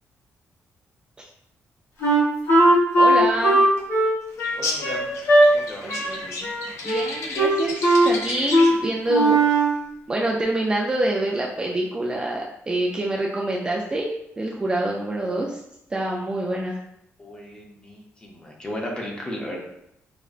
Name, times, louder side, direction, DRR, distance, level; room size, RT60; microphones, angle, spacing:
Wind instrument woodwind instrument, 2.0-5.5 5.9-6.2 6.4-7.1 7.4-8.1 8.5-8.7 9.1-9.8, right 1 dB, 60° left, 0.9 m, -18 dB
voice 1, 3.0-3.6 5.8-6.5 6.8-9.6 10.1-15.6 15.9-16.8, right 1 dB, 20° right, -2 dB, 0.3 m, -26 dB
sound 1, 4.4-8.9, left 3 dB, 80° left, 0.5 m, -33 dB
voice 2, 4.6-5.1 5.5-5.8 17.2-19.6, left 1 dB, 20° left, -1 dB, 0.7 m, -35 dB
4.9 x 2.1 x 2.4 m, 0.78 s
wide cardioid pair, 155°, 5 cm